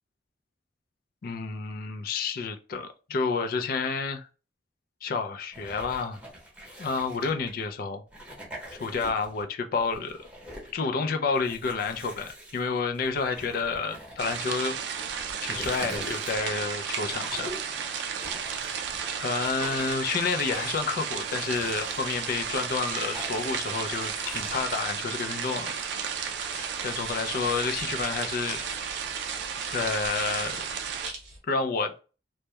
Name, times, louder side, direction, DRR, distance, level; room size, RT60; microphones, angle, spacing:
voice 1, 1.2-4.3 5.0-6.2 6.8-8.0 8.8-10.2 10.7-14.8 15.4-17.5 17.9-18.4 19.2-25.7 26.8-28.6 29.7-30.7 31.5-31.9, left 4 dB, 55° left, 6 dB, 0.4 m, -30 dB
sound 1, 5.5-7.6 8.1-9.4 9.8-10.7 11.3-14.6 15.1-16.6 17.1-17.7 18.2-19.1 19.4-20.0 20.4-20.9 21.3-22.1 22.6-23.6 23.9-24.6, equal, 5° right, 0.8 m, -44 dB
sound 2, 14.2-31.1, right 7 dB, 70° right, 0.3 m, -33 dB
sound 3, 21.7-31.4, right 2 dB, 40° right, 0.9 m, -43 dB
2.2 x 2.1 x 2.8 m, 0.34 s
head